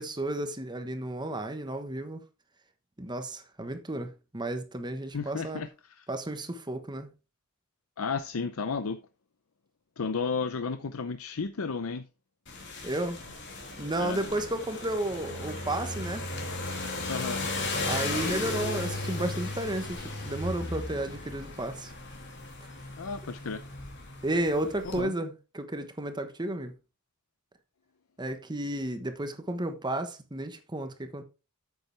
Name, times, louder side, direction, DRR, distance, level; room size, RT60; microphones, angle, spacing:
voice 1, 0.0-2.2 3.0-5.7 6.1-7.1 12.8-13.2 13.8-16.3 17.8-21.9 24.2-26.7 28.2-31.2, right 1 dB, 20° right, 1.1 m, -32 dB
voice 2, 5.1-6.1 8.0-9.0 10.0-12.1 14.0-14.2 17.1-17.4 23.0-23.6 24.8-25.1, left 5 dB, 75° left, 0.6 m, -33 dB
sound 1, 12.5-25.0, left 2 dB, 55° left, 2.7 m, -36 dB
8.9 x 7.8 x 3.3 m
head